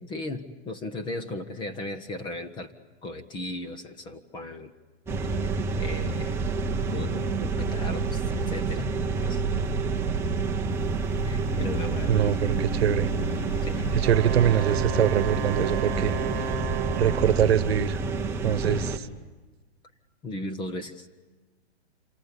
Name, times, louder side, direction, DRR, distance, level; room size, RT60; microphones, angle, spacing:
voice 1, 0.0-2.7 3.0-4.7 5.2-5.3 5.7-6.4 6.8-8.9 9.2-9.4 11.2-12.4 13.6-13.9 18.6-18.9 20.2-21.1, left 2 dB, 15° left, 11 dB, 1.1 m, -36 dB
sound 1, 5.1-19.0, right 4 dB, 5° right, 1.0 m, -28 dB
sound 2, 10.7-16.5, left 3 dB, 40° left, 1.7 m, -43 dB
voice 2, 12.1-13.1 13.9-16.1 17.0-18.0 18.4-18.9, right 10 dB, 60° right, 16 dB, 1.2 m, -23 dB
Wind instrument woodwind instrument, 14.0-17.7, right 9 dB, 30° right, 1.9 m, -34 dB
27.5 x 25.0 x 8.4 m, 1.2 s
hypercardioid pair, 150°, 34 cm